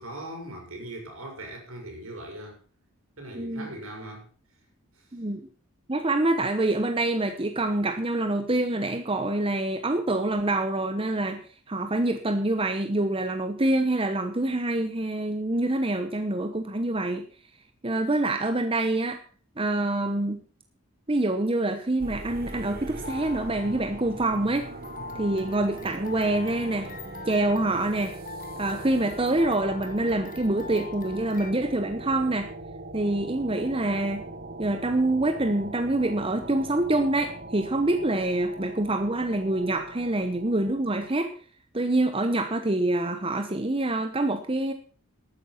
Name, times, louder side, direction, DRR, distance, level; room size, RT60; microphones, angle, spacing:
voice 1, 0.0-2.6 3.2-4.3 4.9-5.1, right 1 dB, 75° right, 5.6 m, -40 dB
voice 2, 3.3-3.7 5.1-5.4 5.9-11.4 11.7-17.2 17.8-19.2 19.6-20.4 21.1-24.7 25.1-26.9 27.3-28.1 28.6-32.5 32.9-34.3 34.6-41.3 41.7-44.7, right 2 dB, 25° right, 0.9 m, -26 dB
sound 1, 22.0-41.2, right 2 dB, 45° right, 1.3 m, -41 dB
sound 2, 22.3-31.5, left 4 dB, 40° left, 1.3 m, -44 dB
12.5 x 9.3 x 5.8 m
head